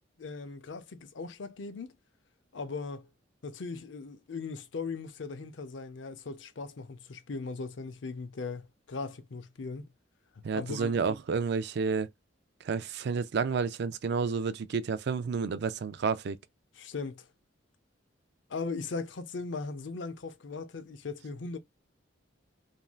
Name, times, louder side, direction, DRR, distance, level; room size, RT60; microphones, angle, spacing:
voice 1, 0.2-2.0 2.5-3.1 3.4-9.9 10.5-10.9 16.8-17.3 18.5-21.6, left 4 dB, 70° left, 0.5 m, -38 dB
voice 2, 10.4-12.1 12.6-16.4, right 5 dB, 60° right, 0.4 m, -30 dB
3.1 x 2.6 x 2.2 m
head